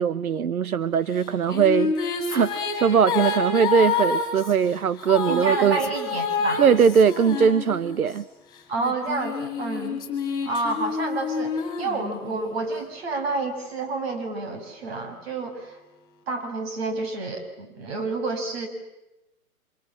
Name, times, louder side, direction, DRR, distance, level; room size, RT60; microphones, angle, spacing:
voice 1, 0.0-5.8 6.6-8.2, right 7 dB, 80° right, 16 dB, 1.0 m, -21 dB
sound 1, 1.2-8.2 8.8-12.5, left 4 dB, 10° left, 5.5 m, -28 dB
voice 2, 5.3-6.6 8.7-10.0 10.4-15.8 16.3-18.7, right 3 dB, 45° right, 6 dB, 6.4 m, -29 dB
28.5 x 26.5 x 7.5 m, 0.97 s
hypercardioid pair, 150°, 43 cm